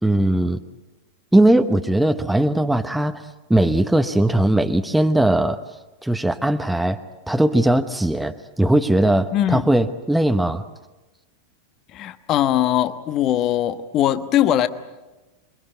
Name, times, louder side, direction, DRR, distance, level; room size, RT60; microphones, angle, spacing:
voice 1, 0.0-0.6 1.3-5.6 6.0-7.0 7.3-10.7, right 1 dB, 5° right, 7 dB, 0.9 m, -19 dB
voice 2, 9.3-9.7 11.9-14.7, left 11 dB, 35° left, 12 dB, 1.1 m, -20 dB
27.5 x 23.0 x 9.0 m, 1.1 s
figure-of-eight pair, 90°, 0 cm